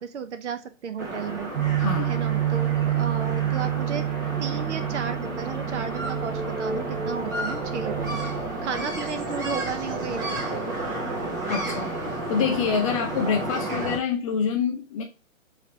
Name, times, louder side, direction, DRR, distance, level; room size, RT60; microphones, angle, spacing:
voice 1, 0.0-1.5 2.1-4.1 4.4-8.2 8.6-10.7, right 6 dB, 60° right, 0.7 m, -33 dB
sound 1, 1.0-14.0, right 2 dB, 15° right, 0.5 m, -32 dB
sound 2, 1.5-8.6, right 11 dB, 80° right, 1.1 m, -28 dB
voice 2, 1.8-2.1 11.5-15.0, left 6 dB, 25° left, 0.6 m, -26 dB
3.7 x 3.3 x 4.3 m
figure-of-eight pair, 130°, 40 cm